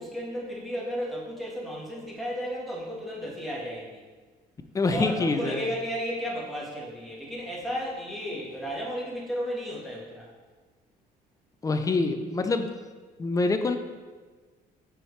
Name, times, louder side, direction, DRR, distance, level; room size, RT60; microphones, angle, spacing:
voice 1, 0.0-4.0 4.9-10.3, equal, ahead, -5 dB, 1.6 m, -33 dB
voice 2, 4.7-5.7 11.6-12.7 13.2-13.8, left 3 dB, 20° left, 7 dB, 0.5 m, -25 dB
6.0 x 4.8 x 3.2 m, 1.4 s
cardioid pair, 110°, 17 cm